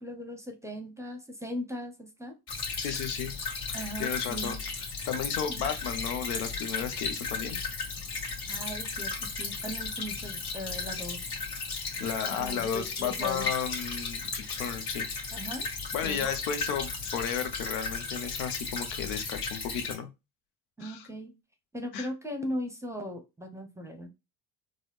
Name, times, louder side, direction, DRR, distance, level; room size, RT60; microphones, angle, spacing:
voice 1, 0.0-2.4 3.7-4.6 5.5-5.7 8.5-11.3 12.2-13.5 15.3-15.7 16.0-16.3 20.8-21.3 21.7-24.1, equal, 5° right, 5 dB, 0.7 m, -38 dB
Stream / Trickle dribble, 2.5-19.9, left 4 dB, 60° left, 1.7 m, -35 dB
voice 2, 2.8-3.3 3.7-7.6 12.0-15.1 15.9-20.1 20.8-21.1 21.9-22.1, left 7 dB, 80° left, 8 dB, 0.9 m, -34 dB
3.9 x 2.1 x 3.2 m, 0.25 s
supercardioid pair, 80°, 46 cm